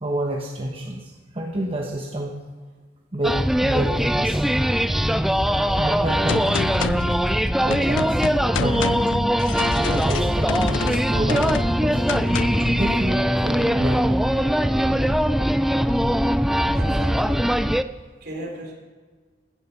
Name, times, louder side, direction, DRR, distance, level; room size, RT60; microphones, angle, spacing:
voice 1, 0.0-2.4 3.1-7.1 7.6-9.0 9.7-12.0 12.7-14.5 16.6-16.7, right 1 dB, 30° right, 0 dB, 1.1 m, -29 dB
sound 1, 3.2-17.8, equal, ahead, 0.3 m, -21 dB
Gunshot gunfire, 6.3-12.8, left 8 dB, 90° left, 0.3 m, -30 dB
voice 2, 16.7-17.7 18.2-18.7, equal, 60° right, 0 dB, 3.7 m, -36 dB
16.5 x 11.0 x 5.8 m, 1.4 s
head